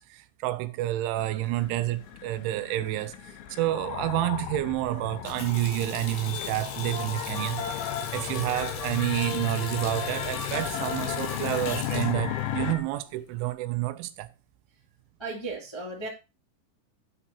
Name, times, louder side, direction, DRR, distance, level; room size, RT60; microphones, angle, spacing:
voice 1, 0.0-3.2 3.5-14.3, right 16 dB, 85° right, 3.0 m, -29 dB
sound 1, 1.2-12.8, left 13 dB, 85° left, 3.2 m, -35 dB
sound 2, 1.3-12.8, left 3 dB, 45° left, 2.1 m, -41 dB
Water tap faucet, 5.1-13.5, left 5 dB, 70° left, 4.2 m, -41 dB
voice 2, 15.2-16.1, right 3 dB, 20° left, 0.8 m, -35 dB
10.0 x 6.4 x 4.3 m
omnidirectional pair, 5.5 m